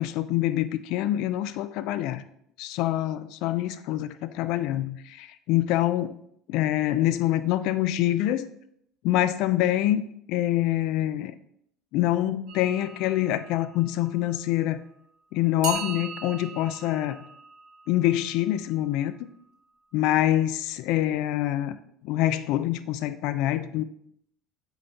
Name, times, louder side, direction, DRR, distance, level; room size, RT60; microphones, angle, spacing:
voice 1, 0.0-2.2 2.6-6.1 6.5-8.5 9.0-10.0 10.3-11.3 11.9-14.8 15.3-17.2 17.9-19.1 19.9-21.8 22.0-23.8, left 13 dB, 70° left, 13 dB, 0.3 m, -25 dB
sound 1, 12.5-14.9 15.6-19.5, right 7 dB, 70° right, 1.0 m, -41 dB
4.0 x 3.8 x 3.4 m, 0.70 s
supercardioid pair, 90°, 0 cm